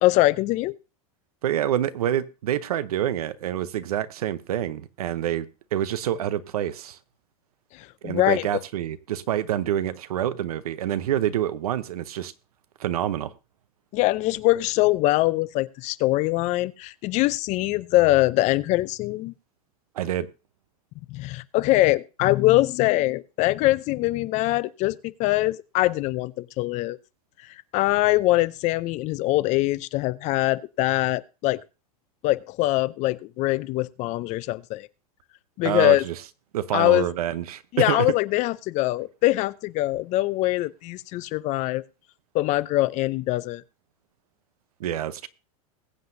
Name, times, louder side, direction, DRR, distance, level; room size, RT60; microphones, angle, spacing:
voice 1, 0.0-0.7 7.7-8.4 13.9-19.3 21.1-27.0 27.7-31.6 32.2-34.9 35.6-36.0 36.7-37.1 37.7-41.8 42.3-43.6, left 18 dB, 40° left, 0.5 m, -23 dB
voice 2, 1.4-5.5 5.7-7.0 8.0-12.3 12.8-13.3 19.9-20.3 35.6-36.2 36.5-38.1 44.8-45.3, right 11 dB, 90° right, 0.9 m, -27 dB
21.0 x 7.7 x 2.7 m
supercardioid pair, 130°, 19 cm